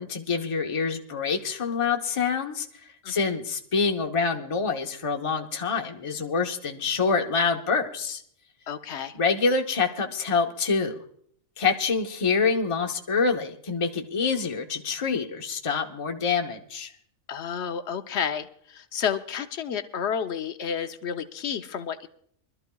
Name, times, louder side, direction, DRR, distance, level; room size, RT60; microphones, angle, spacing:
voice 1, 0.0-8.2 9.1-11.0 11.6-16.9, left 5 dB, 25° left, 3 dB, 0.9 m, -26 dB
voice 2, 8.7-9.2 17.3-22.1, left 7 dB, 60° left, 9 dB, 1.0 m, -31 dB
24.5 x 13.0 x 2.3 m, 0.64 s
omnidirectional pair, 1.4 m